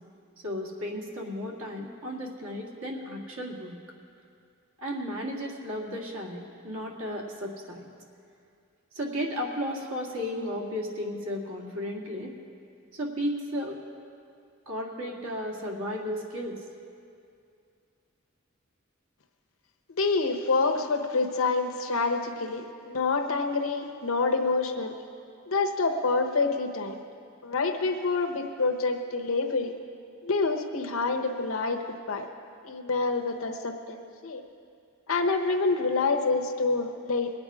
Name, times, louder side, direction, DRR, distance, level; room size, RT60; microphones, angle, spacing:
voice 1, 0.4-3.8 4.8-7.9 8.9-12.4 12.9-13.8 14.7-16.6, equal, 80° right, -1 dB, 2.0 m, -34 dB
voice 2, 19.9-24.9 25.5-27.0 27.4-29.7 30.2-32.3 32.6-34.4 35.1-37.3, left 3 dB, 75° left, 4 dB, 0.9 m, -27 dB
21.5 x 8.8 x 4.9 m, 2.4 s
head